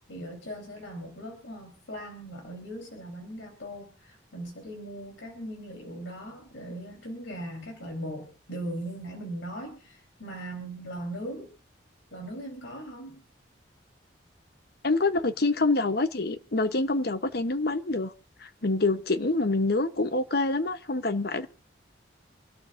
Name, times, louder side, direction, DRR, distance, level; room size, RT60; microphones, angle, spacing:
voice 1, 0.1-11.5 12.1-13.2, right 1 dB, 80° left, 4.0 m, -39 dB
voice 2, 14.8-18.1 18.4-21.5, left 2 dB, 55° left, 1.0 m, -26 dB
27.5 x 12.0 x 2.6 m
head